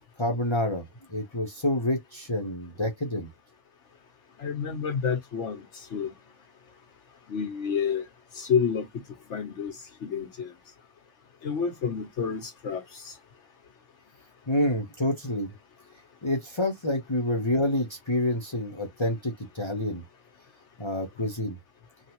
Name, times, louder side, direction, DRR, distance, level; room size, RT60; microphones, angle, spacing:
voice 1, 0.2-0.8 1.1-3.3 14.5-15.5 16.2-20.0 20.8-21.6, left 1 dB, 25° left, 0.8 m, -28 dB
voice 2, 4.4-5.6 5.9-6.1 7.3-8.0 8.4-9.0 9.3-9.7 10.0-10.5 11.4-13.1, left 6 dB, 70° left, 1.1 m, -29 dB
3.4 x 2.4 x 2.8 m
omnidirectional pair, 1.3 m